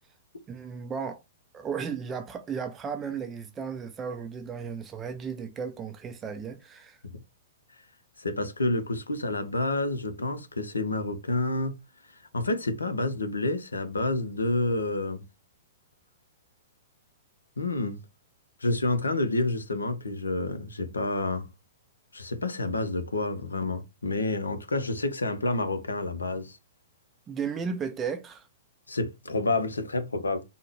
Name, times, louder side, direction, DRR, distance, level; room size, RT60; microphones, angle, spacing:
voice 1, 0.5-1.2 1.5-7.0 27.3-28.5, right 6 dB, 20° right, 0.4 m, -34 dB
voice 2, 8.2-11.8 12.3-15.2 17.6-18.0 18.6-21.5 22.1-26.6 28.9-30.4, left 2 dB, 75° left, 0.6 m, -29 dB
3.5 x 2.1 x 3.3 m
figure-of-eight pair, 110°, 0 cm